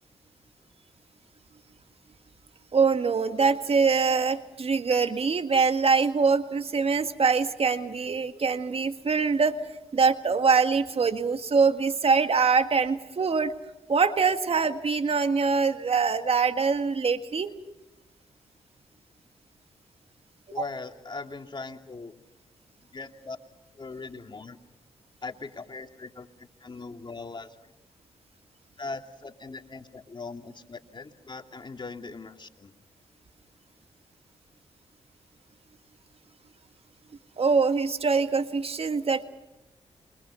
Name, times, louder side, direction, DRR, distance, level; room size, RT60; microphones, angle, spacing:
voice 1, 2.7-9.6 9.9-13.5 13.9-17.5 37.4-39.2, right 5 dB, 55° right, 9 dB, 1.9 m, -24 dB
voice 2, 20.5-22.1 22.9-23.4 23.8-24.6 25.2-27.6 28.8-32.7, left 3 dB, 40° left, 5 dB, 2.7 m, -40 dB
28.0 x 24.0 x 5.8 m, 0.94 s
supercardioid pair, 50°, 12 cm